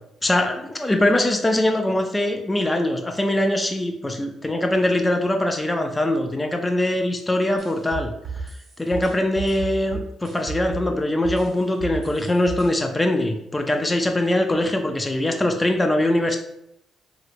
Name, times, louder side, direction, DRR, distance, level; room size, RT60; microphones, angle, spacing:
voice 1, 0.2-8.1 8.8-16.4, left 1 dB, 15° left, 4 dB, 0.4 m, -22 dB
sound 1, 7.6-10.9 11.2-12.7, right 5 dB, 55° right, 1.4 m, -33 dB
3.1 x 2.9 x 2.5 m, 0.79 s
cardioid pair, 90°, 0 cm